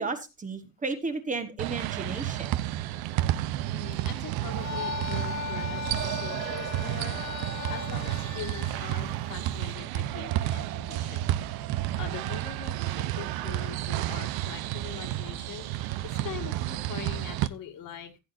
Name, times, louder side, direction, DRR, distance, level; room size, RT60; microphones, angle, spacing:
voice 1, 0.0-2.6, right 4 dB, 20° right, 7 dB, 1.3 m, -33 dB
sound 1, 1.6-17.5, right 14 dB, 90° right, 0.7 m, -31 dB
voice 2, 3.7-11.3 11.6-18.1, left 8 dB, 65° left, 4 dB, 2.2 m, -43 dB
sound 2, 4.5-9.7, left 7 dB, 50° left, 1.1 m, -38 dB
15.0 x 8.6 x 2.6 m, 0.25 s
cardioid pair, 160°, 36 cm